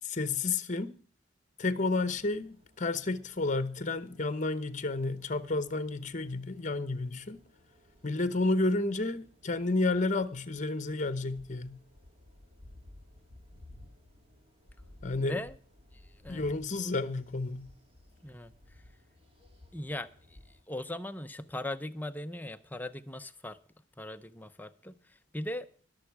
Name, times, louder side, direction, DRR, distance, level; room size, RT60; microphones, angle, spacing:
voice 1, 0.0-1.0 1.6-7.4 8.0-11.8 15.0-15.4 16.3-17.7, left 3 dB, 40° left, 1.0 m, -31 dB
sound 1, 2.0-20.6, left 1 dB, 30° right, 2.1 m, -58 dB
voice 2, 19.7-20.4 20.7-23.6 24.0-25.7, left 1 dB, 10° left, 0.6 m, -39 dB
21.0 x 7.2 x 4.7 m
head